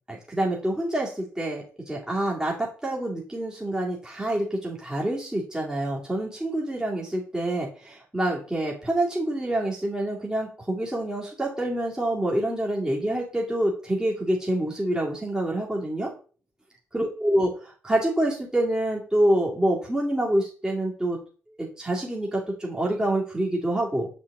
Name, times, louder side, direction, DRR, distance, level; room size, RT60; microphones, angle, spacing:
voice 1, 0.1-16.1 16.9-21.2 21.6-24.1, right 1 dB, 10° right, -3 dB, 2.3 m, -27 dB
7.4 x 4.6 x 3.6 m, 0.39 s
hypercardioid pair, 45°, 7 cm